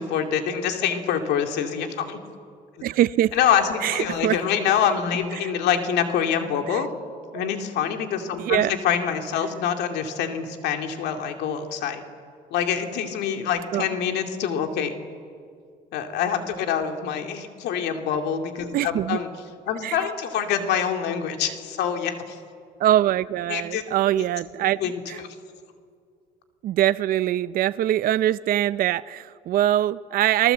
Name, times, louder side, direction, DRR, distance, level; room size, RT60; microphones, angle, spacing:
voice 1, 0.0-2.2 3.3-6.9 7.3-12.0 12.5-14.9 15.9-19.3 19.7-22.4 23.5-23.8 24.1-24.2 24.8-24.9, left 8 dB, 80° left, 5 dB, 2.4 m, -25 dB
voice 2, 2.8-3.3 3.8-4.4 5.4-5.5 6.7-6.8 7.3-7.5 8.4-8.7 13.7-13.9 18.7-19.2 19.8-20.0 22.8-24.8 25.1-25.2 26.6-30.5, right 12 dB, 60° right, 15 dB, 0.5 m, -23 dB
29.0 x 19.0 x 8.0 m, 2.2 s
cardioid pair, 110°, 17 cm